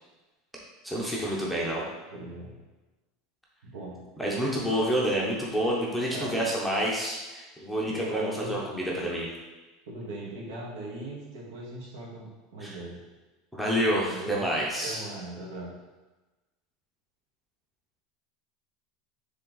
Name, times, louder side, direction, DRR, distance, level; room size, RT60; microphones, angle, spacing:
voice 1, 0.8-1.8 4.2-9.3 12.6-12.8 13.5-15.0, equal, ahead, -5 dB, 0.7 m, -28 dB
voice 2, 2.1-2.6 3.6-4.0 4.6-4.7 6.1-6.5 7.9-8.6 9.9-13.0 14.1-14.5 14.8-15.7, right 2 dB, 75° right, -4 dB, 1.9 m, -39 dB
7.2 x 3.4 x 3.9 m, 1.2 s
supercardioid pair, 180°, 0 cm